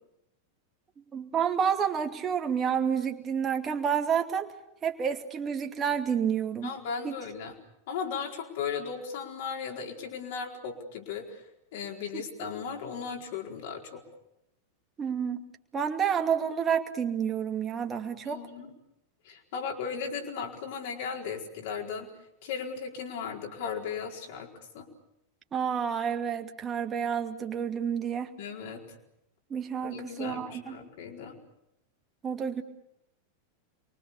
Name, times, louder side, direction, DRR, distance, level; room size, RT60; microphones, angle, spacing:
voice 1, 1.1-4.5 4.8-6.7 7.0-7.1 12.1-12.5 15.0-15.4 15.7-18.4 25.5-28.3 29.5-30.8 32.2-32.6, right 7 dB, 20° right, 4 dB, 2.5 m, -29 dB
voice 2, 6.6-7.5 7.9-11.4 11.7-14.0 18.2-18.7 19.2-22.1 22.4-24.5 24.7-24.9 28.4-28.9 29.8-31.4, left 6 dB, 50° left, 2 dB, 4.6 m, -36 dB
28.0 x 24.0 x 7.0 m, 0.84 s
figure-of-eight pair, 90°, 0 cm